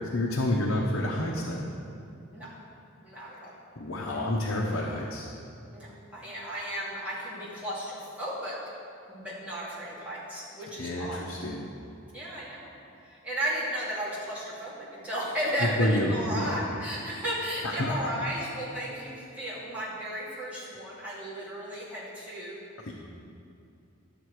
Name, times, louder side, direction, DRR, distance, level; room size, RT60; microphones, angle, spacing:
voice 1, 0.0-1.6 3.8-5.3 10.8-11.7 15.6-16.6 17.6-18.1 22.8-22.9, left 1 dB, 65° left, -3 dB, 0.9 m, -29 dB
voice 2, 3.0-3.5 5.7-8.5 9.1-11.3 12.1-12.7 13.0-22.6, right 1 dB, 5° right, -10 dB, 2.7 m, -34 dB
12.0 x 6.8 x 4.8 m, 2.6 s
head